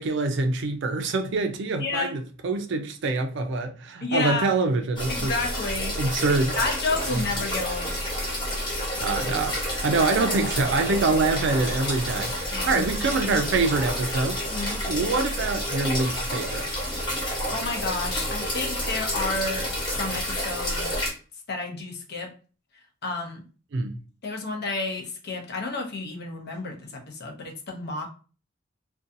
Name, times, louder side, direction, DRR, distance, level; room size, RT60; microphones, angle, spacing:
voice 1, 0.0-5.3 6.0-6.6 7.1-7.2 8.9-12.3 12.7-14.4 14.8-16.7 23.7-24.0, right 3 dB, 65° right, 0.4 m, -25 dB
voice 2, 1.8-2.2 4.0-4.5 5.1-5.9 6.6-7.9 12.5-12.8 14.5-14.8 17.5-19.7 20.0-20.9 21.5-22.3 23.0-23.4 24.2-28.1, left 3 dB, 55° left, 0.6 m, -30 dB
sound 1, 5.0-21.1, equal, 20° left, 1.0 m, -29 dB
sound 2, 7.7-16.2, right 1 dB, 10° right, 0.8 m, -41 dB
2.6 x 2.3 x 2.6 m
head